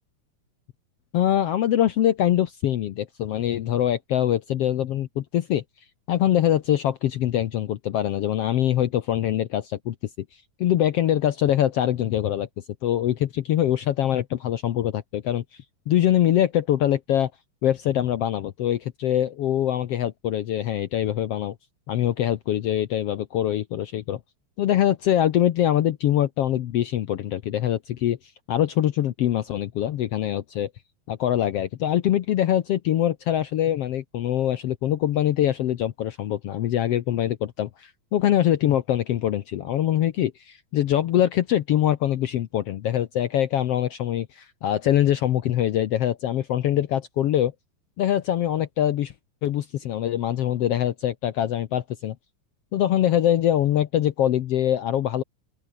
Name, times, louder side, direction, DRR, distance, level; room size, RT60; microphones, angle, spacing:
voice 1, 1.1-5.6 6.1-9.9 10.6-12.5 12.8-15.4 15.9-17.3 17.6-21.5 21.9-24.2 24.6-28.2 28.5-30.7 31.1-47.5 48.0-49.1 49.4-52.1 52.7-55.2, left 11 dB, 75° left, 1.4 m, -23 dB
open air
omnidirectional pair, 3.9 m